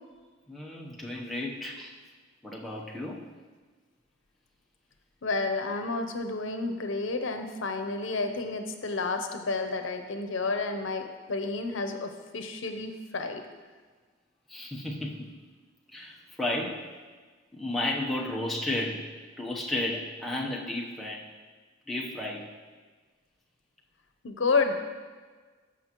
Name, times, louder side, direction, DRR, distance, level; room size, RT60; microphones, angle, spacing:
voice 1, 0.5-2.0 2.4-3.3 14.5-15.3 15.9-16.9 17.5-21.3 21.9-22.6, left 1 dB, ahead, -3 dB, 0.8 m, -33 dB
voice 2, 5.2-13.4 24.2-24.8, left 3 dB, 80° left, 6 dB, 0.7 m, -30 dB
14.0 x 6.2 x 3.0 m, 1.4 s
head